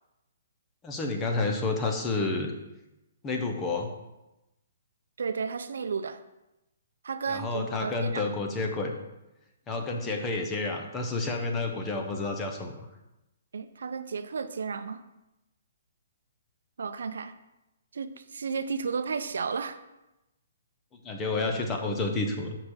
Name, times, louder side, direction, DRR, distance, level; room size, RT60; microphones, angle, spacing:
voice 1, 0.8-2.5 3.2-3.9 7.3-9.0 9.7-12.9 21.0-22.6, left 3 dB, 10° left, 3 dB, 0.5 m, -30 dB
voice 2, 5.2-6.2 7.0-8.3 13.5-15.0 16.8-17.4 17.9-19.8, right 5 dB, 70° right, 10 dB, 0.5 m, -33 dB
5.6 x 4.8 x 6.4 m, 0.96 s
hypercardioid pair, 180°, 0 cm